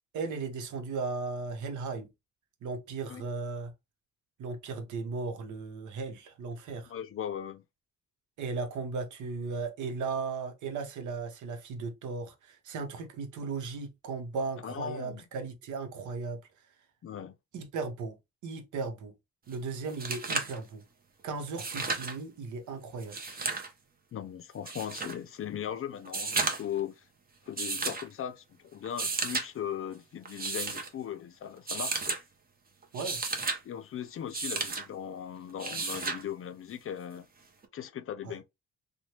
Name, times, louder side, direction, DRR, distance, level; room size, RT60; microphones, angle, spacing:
voice 1, 0.1-2.1 2.6-3.7 4.4-6.9 8.4-16.4 17.5-18.2 18.4-19.1 19.5-20.8 21.2-23.3 32.9-33.2 38.2-38.4, right 4 dB, 75° right, 0.9 m, -36 dB
voice 2, 6.9-7.6 14.6-15.2 17.0-17.3 24.1-27.0 27.5-32.2 33.6-37.3 37.7-38.4, left 9 dB, 45° left, 0.5 m, -38 dB
sound 1, 19.5-19.6 19.9-20.6 21.5-22.2 23.0-23.7 24.7-25.2 26.0-26.8 27.6-28.1 28.8-29.5 30.3-30.9 31.7-32.2 32.8-33.6 34.3-34.8 35.6-36.2 37.6-37.7, right 4 dB, 30° right, 0.8 m, -33 dB
3.1 x 2.2 x 2.8 m
cardioid pair, 90°, 30 cm